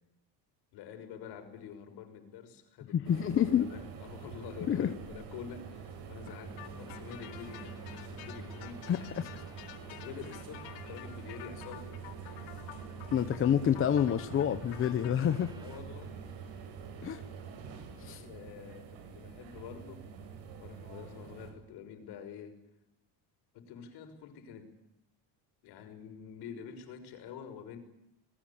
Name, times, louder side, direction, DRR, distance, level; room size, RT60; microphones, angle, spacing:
voice 1, 0.7-8.9 9.9-12.0 12.2-12.5 15.5-16.2 18.2-20.0 20.6-22.6 23.5-24.7 25.6-27.8, left 7 dB, 60° left, 7 dB, 6.1 m, -47 dB
voice 2, 2.9-3.7 4.6-4.9 6.3-6.4 8.9-9.4 13.1-15.6 17.0-17.2 18.0-18.3, left 9 dB, 30° left, 10 dB, 1.0 m, -28 dB
sound 1, 3.0-21.5, right 6 dB, 85° right, 8.0 m, -46 dB
sound 2, 6.4-15.8, equal, 10° right, 1.5 m, -54 dB
sound 3, 6.6-15.1, left 14 dB, 90° left, 4.0 m, -50 dB
28.5 x 21.0 x 8.7 m, 0.85 s
cardioid pair, 175°, 43 cm